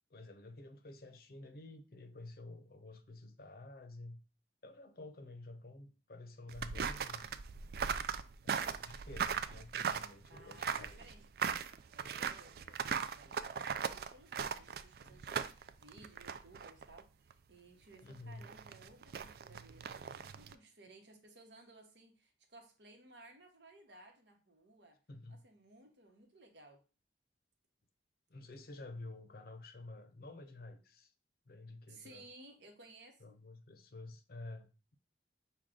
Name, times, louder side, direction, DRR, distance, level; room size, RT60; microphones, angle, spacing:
voice 1, 0.1-4.2 4.6-7.3 8.4-11.0 15.1-15.2 18.0-18.5 25.1-25.4 28.3-31.1 31.5-32.3 33.2-35.0, left 2 dB, 55° left, 0.6 m, -51 dB
sound 1, 6.5-17.0 17.3-17.4 18.3-20.5, right 7 dB, 55° right, 0.3 m, -38 dB
voice 2, 10.3-11.3 11.9-25.0 25.3-26.8 31.9-33.3, right 2 dB, 70° right, 1.0 m, -59 dB
6.4 x 2.3 x 3.7 m
head